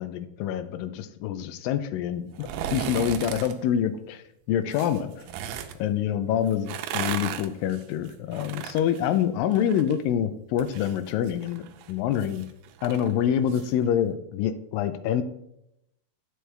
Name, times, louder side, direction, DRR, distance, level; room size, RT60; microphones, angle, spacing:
voice 1, 0.0-4.2 4.5-5.1 5.8-12.5 12.8-15.2, left 9 dB, 80° left, 11 dB, 2.1 m, -26 dB
sound 1, 2.3-3.5 4.7-5.8 6.5-10.0 10.3-13.7 14.0-14.1, right 9 dB, 90° right, 2.6 m, -36 dB
8.0 x 6.2 x 3.3 m, 0.82 s
omnidirectional pair, 4.3 m